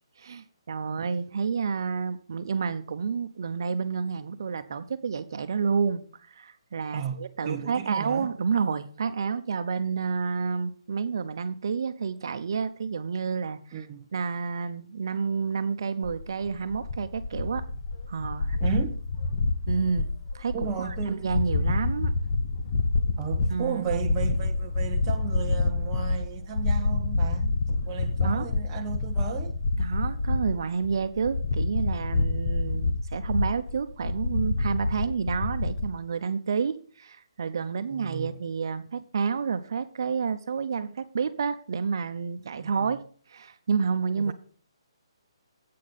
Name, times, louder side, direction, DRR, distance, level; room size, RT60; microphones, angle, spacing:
voice 1, 0.2-6.0 6.3-13.8 14.1-17.6 18.1-18.6 19.7-20.1 20.3-22.1 23.5-23.9 28.2-28.5 29.8-43.0 43.3-44.3, right 5 dB, 45° right, 0.7 m, -29 dB
voice 2, 0.8-1.2 6.9-8.3 13.7-14.1 18.6-19.0 20.5-21.2 23.2-29.5 37.9-38.3 42.6-42.9 44.2-44.3, right 7 dB, 15° right, 0.5 m, -35 dB
sound 1, 16.0-35.9, left 3 dB, 35° left, 0.8 m, -28 dB
8.5 x 6.0 x 6.6 m
hypercardioid pair, 175°, 3 cm